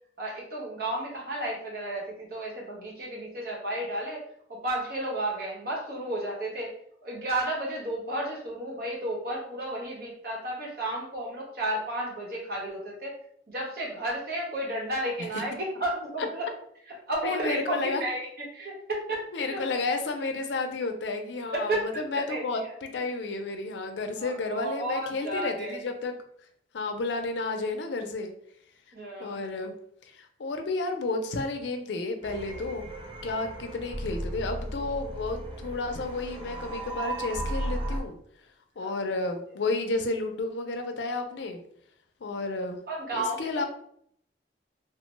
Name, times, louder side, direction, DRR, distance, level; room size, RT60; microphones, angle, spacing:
voice 1, 0.2-4.2 4.5-6.7 7.0-13.1 13.5-16.4 17.1-18.3 18.5-19.6 21.5-22.7 24.2-25.8 28.9-29.4 38.8-39.1 42.9-43.7, right 1 dB, 55° right, -3 dB, 1.0 m, -32 dB
voice 2, 17.2-18.0 19.3-26.1 26.7-28.3 29.2-29.7 30.1-32.9 33.2-38.2 38.8-41.6 42.2-42.8 43.1-43.6, left 3 dB, 80° left, 6 dB, 0.5 m, -31 dB
sound 1, 32.2-38.0, right 1 dB, 30° right, 0.5 m, -35 dB
3.2 x 2.1 x 3.1 m, 0.67 s
head